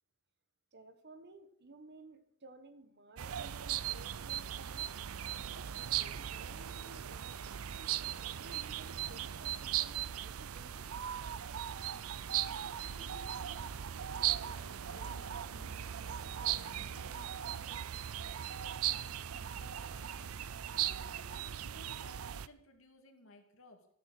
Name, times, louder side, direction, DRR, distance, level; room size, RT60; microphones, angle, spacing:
voice 1, 0.7-5.0 5.5-5.7 6.0-7.4 7.7-10.9, right 2 dB, 55° right, 9 dB, 1.6 m, -56 dB
sound 1, 3.2-22.5, right 10 dB, 85° right, 0.6 m, -38 dB
voice 2, 12.3-14.0 14.3-17.8 18.2-23.9, left 2 dB, 65° left, 4 dB, 2.8 m, -59 dB
14.0 x 13.0 x 6.3 m, 0.72 s
head